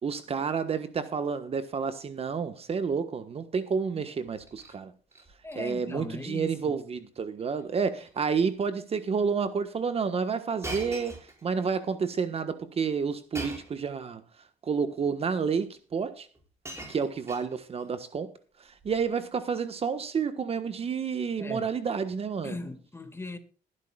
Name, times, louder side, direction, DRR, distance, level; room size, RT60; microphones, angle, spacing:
voice 1, 0.0-4.9 5.5-14.2 14.6-16.3 16.9-18.3 18.8-22.6, right 6 dB, 35° right, 1.4 m, -30 dB
Shatter, 4.3-4.8 5.1-5.6 5.9-6.2 6.4-6.5 7.4-7.6 8.0-8.2 9.0-9.1 10.6-11.7 13.3-13.8 14.8-14.9 16.0-16.1 16.3-17.9 18.8-19.1, right 1 dB, 15° right, 5.9 m, -42 dB
voice 2, 5.4-6.8 21.4-21.7 22.4-23.4, left 2 dB, 15° left, 2.0 m, -38 dB
21.0 x 11.0 x 2.4 m
cardioid pair, 110°, 17 cm